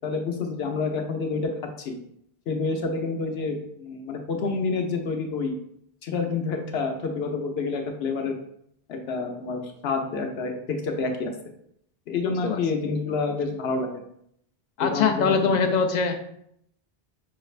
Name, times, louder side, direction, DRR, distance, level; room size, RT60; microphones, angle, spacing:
voice 1, 0.0-1.5 1.9-2.0 2.5-5.5 6.0-8.3 8.9-10.6 10.8-11.3 12.1-14.0 14.8-15.5, left 4 dB, 85° left, 4 dB, 0.9 m, -28 dB
voice 2, 14.8-16.2, left 5 dB, 55° left, 6 dB, 0.6 m, -22 dB
5.5 x 3.2 x 2.4 m, 0.72 s
omnidirectional pair, 1.0 m